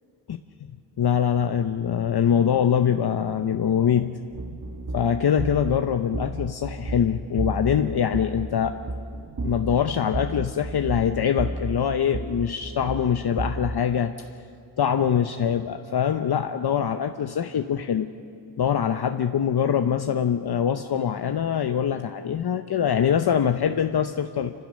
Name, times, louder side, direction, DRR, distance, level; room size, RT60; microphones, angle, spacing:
voice 1, 1.0-4.2 4.9-8.8 9.4-14.3 14.8-18.1 18.6-24.5, left 8 dB, 60° left, 7 dB, 0.8 m, -23 dB
sound 1, 4.3-13.8, right 2 dB, 50° right, 1.3 m, -33 dB
28.5 x 15.5 x 6.4 m, 2.5 s
wide cardioid pair, 95°, 44 cm